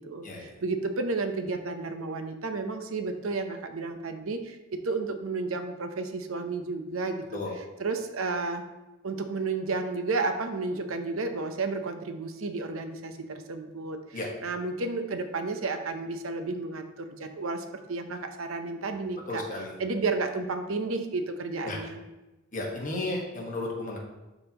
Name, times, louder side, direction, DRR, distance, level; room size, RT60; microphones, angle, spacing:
voice 1, 0.0-8.6 9.0-22.0, right 3 dB, 85° right, 7 dB, 0.7 m, -32 dB
voice 2, 19.3-19.7 21.6-21.8 22.5-24.0, left 2 dB, 40° left, -1 dB, 1.4 m, -33 dB
12.0 x 4.1 x 2.9 m, 1.1 s
head